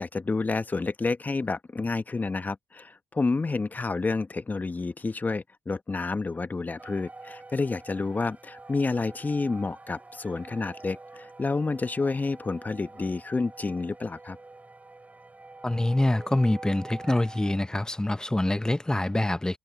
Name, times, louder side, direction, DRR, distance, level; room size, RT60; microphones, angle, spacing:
voice 1, 0.0-14.4, left 3 dB, 30° left, 1.3 m, -29 dB
sound 1, 6.8-17.6, right 2 dB, 25° right, 4.9 m, -46 dB
voice 2, 15.6-19.6, left 1 dB, 15° left, 1.3 m, -25 dB
hypercardioid pair, 45°, 6 cm